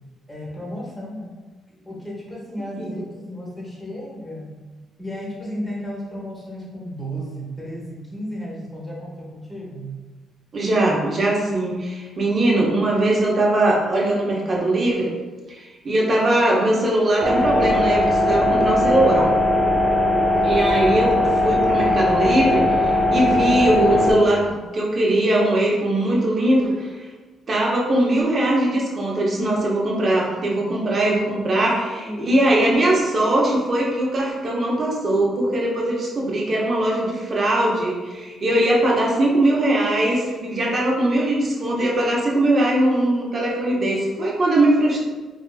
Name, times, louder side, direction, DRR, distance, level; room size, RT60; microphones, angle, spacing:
voice 1, 0.3-1.3 1.8-4.4 5.0-9.9 30.6-30.7 31.1-32.5, equal, 15° left, -5 dB, 1.0 m, -34 dB
voice 2, 10.5-15.1 15.5-19.3 20.4-26.9 27.5-45.1, right 1 dB, 45° right, -3 dB, 0.8 m, -20 dB
sound 1, 17.2-24.1, left 1 dB, 25° right, 0.4 m, -19 dB
3.3 x 2.6 x 2.3 m, 1.3 s
cardioid pair, 90°, 0 cm